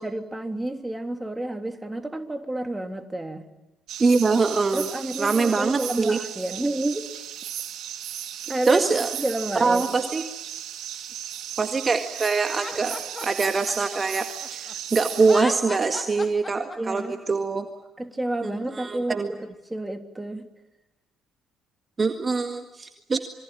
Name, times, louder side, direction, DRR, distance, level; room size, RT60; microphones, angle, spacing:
voice 1, 0.0-3.5 4.7-7.1 8.5-8.9 9.2-9.9 16.8-17.2 18.0-20.5, right 1 dB, 15° right, 6 dB, 3.1 m, -30 dB
sound 1, 3.9-15.4, right 10 dB, 60° right, 2.0 m, -36 dB
voice 2, 4.0-4.9 5.2-6.2 8.7-9.1 9.6-10.2 11.6-13.0 13.2-14.3 14.5-17.7 18.4-19.3 22.0-23.2, right 4 dB, 30° right, 7 dB, 1.9 m, -23 dB
Laughter, 12.5-14.7 15.2-17.0, left 3 dB, 20° left, 2.5 m, -37 dB
27.5 x 23.5 x 9.1 m, 0.98 s
figure-of-eight pair, 50°, 0 cm